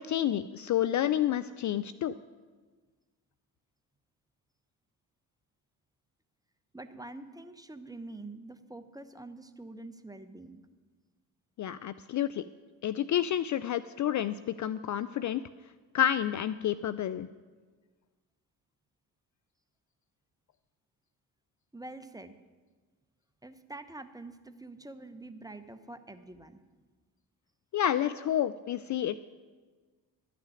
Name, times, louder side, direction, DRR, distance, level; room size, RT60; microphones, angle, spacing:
voice 1, 0.0-2.1 11.6-12.5 12.8-15.4 15.9-17.3 27.7-29.2, left 11 dB, 45° left, 14 dB, 0.4 m, -29 dB
voice 2, 6.7-10.6 21.7-22.3 23.4-26.6 28.1-28.3, right 2 dB, 10° right, 10 dB, 1.0 m, -46 dB
12.0 x 5.9 x 9.1 m, 1.4 s
hypercardioid pair, 50°, 44 cm